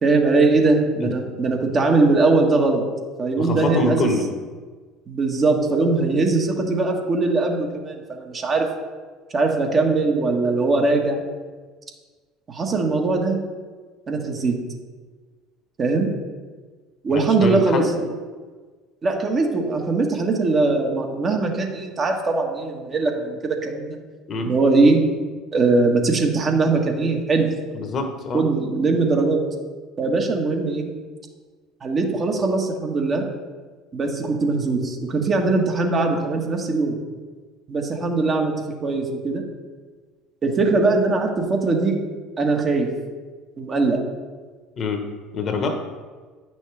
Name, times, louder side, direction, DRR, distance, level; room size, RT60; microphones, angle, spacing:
voice 1, 0.0-2.9 3.2-4.1 5.1-8.7 9.3-11.2 12.5-13.4 14.1-14.6 15.8-16.1 17.0-18.1 19.0-24.0 24.4-25.0 25.5-27.5 28.3-29.5 30.0-30.9 31.8-33.3 33.9-37.0 37.7-39.4 40.4-42.0 42.4-43.0 43.6-44.0, right 3 dB, 40° right, 1 dB, 1.5 m, -21 dB
voice 2, 3.4-4.3 17.1-17.9 24.3-24.5 27.7-28.4 44.8-45.0 45.3-45.8, left 3 dB, 45° left, 5 dB, 1.2 m, -25 dB
9.8 x 6.2 x 3.4 m, 1.4 s
hypercardioid pair, 70°, 0 cm